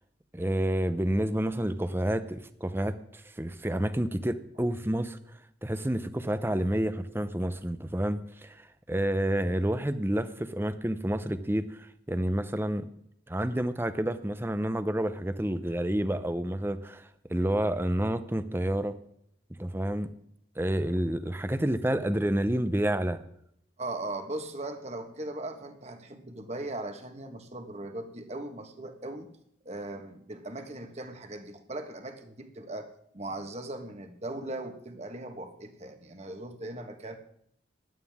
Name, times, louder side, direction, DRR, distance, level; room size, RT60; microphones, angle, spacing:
voice 1, 0.3-5.2 5.6-12.8 13.3-19.0 19.6-20.1 20.6-23.2, right 1 dB, 10° right, 12 dB, 0.7 m, -29 dB
voice 2, 23.8-29.3 29.6-32.9 33.1-37.2, right 2 dB, 35° right, 6 dB, 1.4 m, -39 dB
16.5 x 11.0 x 3.6 m, 0.72 s
head